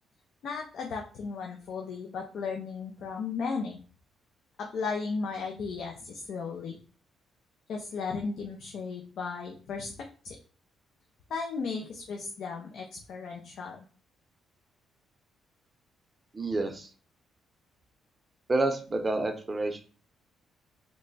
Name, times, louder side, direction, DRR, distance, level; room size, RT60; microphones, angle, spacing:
voice 1, 0.4-3.8 4.6-6.8 7.7-10.4 11.3-13.8, left 5 dB, 70° left, 1 dB, 0.5 m, -35 dB
voice 2, 16.3-16.9 18.5-19.8, right 2 dB, 25° right, 6 dB, 0.6 m, -29 dB
3.1 x 2.2 x 3.9 m, 0.39 s
cardioid pair, 90°, 0 cm